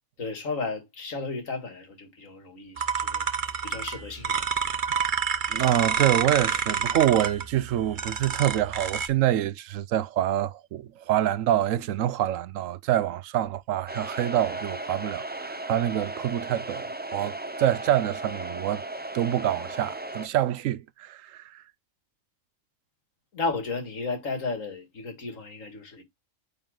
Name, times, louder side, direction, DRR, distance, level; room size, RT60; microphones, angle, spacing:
voice 1, 0.2-3.3 3.6-4.5 23.3-26.0, left 4 dB, 75° left, 2.3 m, -34 dB
sound 1, 2.8-9.1, right 6 dB, 45° right, 0.9 m, -29 dB
voice 2, 5.5-18.8 19.1-21.6, right 12 dB, 75° right, 0.9 m, -26 dB
sound 2, 13.9-20.3, right 2 dB, 15° right, 0.3 m, -36 dB
9.0 x 4.0 x 3.8 m
omnidirectional pair, 1.4 m